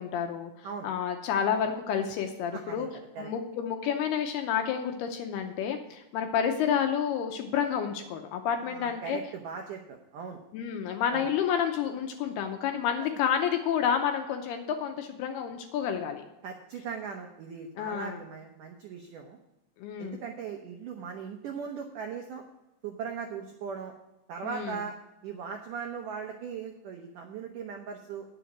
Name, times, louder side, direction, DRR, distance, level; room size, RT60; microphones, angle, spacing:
voice 1, 0.0-2.9 3.2-9.2 10.5-16.2 17.8-18.2 19.8-20.2 24.4-24.8, left 8 dB, 75° left, 5 dB, 2.5 m, -30 dB
voice 2, 2.5-3.3 8.6-10.4 11.1-11.3 16.4-19.4 20.0-22.4 22.8-23.9 24.3-25.0 25.2-28.3, right 6 dB, 90° right, 3 dB, 1.8 m, -39 dB
10.0 x 7.3 x 6.0 m, 0.94 s
omnidirectional pair, 5.0 m